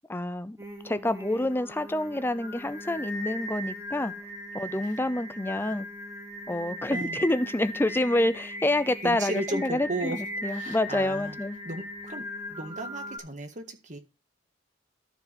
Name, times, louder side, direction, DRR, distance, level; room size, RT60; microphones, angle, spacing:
voice 1, 0.1-0.6 0.8-4.1 4.5-5.9 6.5-10.1 10.4-11.6, left 1 dB, 10° left, 0.6 m, -27 dB
Singing, 0.6-13.2, left 1 dB, 15° right, 2.4 m, -39 dB
voice 2, 6.9-7.2 9.0-10.2 10.5-11.4 11.6-12.2 12.5-14.0, right 1 dB, 40° right, 1.7 m, -35 dB
13.0 x 4.8 x 5.2 m
head